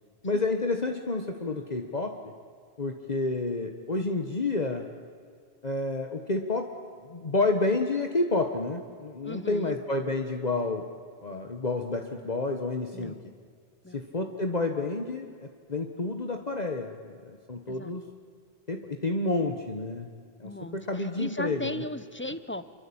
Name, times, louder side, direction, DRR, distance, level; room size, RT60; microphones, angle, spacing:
voice 1, 0.2-2.2 2.8-4.9 5.6-6.7 7.1-10.9 11.2-13.2 13.9-18.1 18.7-20.1 20.4-21.8, left 2 dB, 40° left, 4 dB, 1.5 m, -29 dB
voice 2, 9.2-9.8 12.9-13.2 13.8-14.0 17.7-17.9 20.4-22.7, left 1 dB, 10° left, 13 dB, 0.9 m, -37 dB
27.5 x 23.5 x 8.8 m, 2.1 s
omnidirectional pair, 1.1 m